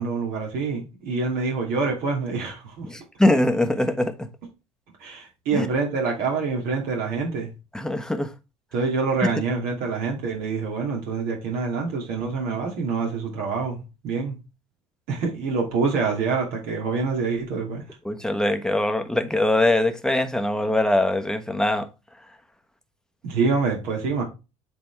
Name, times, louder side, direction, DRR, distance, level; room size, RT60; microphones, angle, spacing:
voice 1, 0.0-2.9 5.0-7.5 8.7-14.4 15.1-17.8 23.2-24.2, right 4 dB, 65° right, 2.6 m, -26 dB
voice 2, 2.8-4.3 5.5-5.7 7.7-8.3 18.0-21.9, left 1 dB, 5° left, 1.1 m, -22 dB
7.8 x 4.3 x 3.4 m
hypercardioid pair, 70°, 16 cm